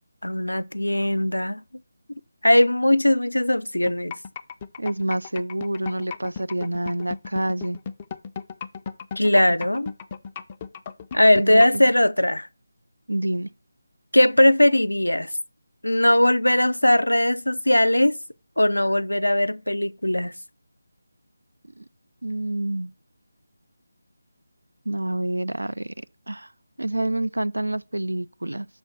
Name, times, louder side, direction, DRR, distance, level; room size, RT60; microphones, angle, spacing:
voice 1, 0.2-1.6 2.4-4.1 9.2-9.9 11.1-12.5 14.1-15.3 15.8-18.2 18.6-20.3, left 1 dB, 85° left, 0.5 m, -19 dB
sound 1, 3.9-11.8, left 6 dB, 20° left, 0.4 m, -35 dB
voice 2, 4.8-7.8 11.4-11.9 13.1-13.5 21.8-21.9 22.2-22.9 24.9-26.5 26.8-28.7, right 1 dB, 75° right, 0.4 m, -28 dB
6.4 x 4.4 x 6.3 m
figure-of-eight pair, 160°, 0 cm